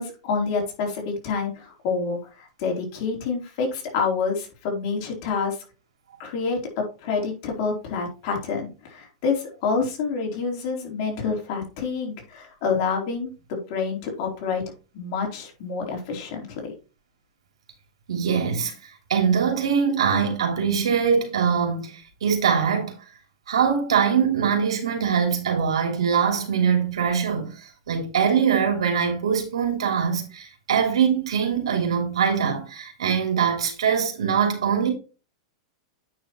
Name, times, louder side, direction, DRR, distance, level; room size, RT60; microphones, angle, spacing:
voice 1, 0.0-5.6 6.2-14.6 14.9-16.6, left 5 dB, 55° left, 4.0 m, -28 dB
voice 2, 18.1-18.7 19.1-22.9 23.5-34.9, right 7 dB, 90° right, 3.2 m, -23 dB
9.1 x 6.1 x 3.1 m
hypercardioid pair, 130°, 3 cm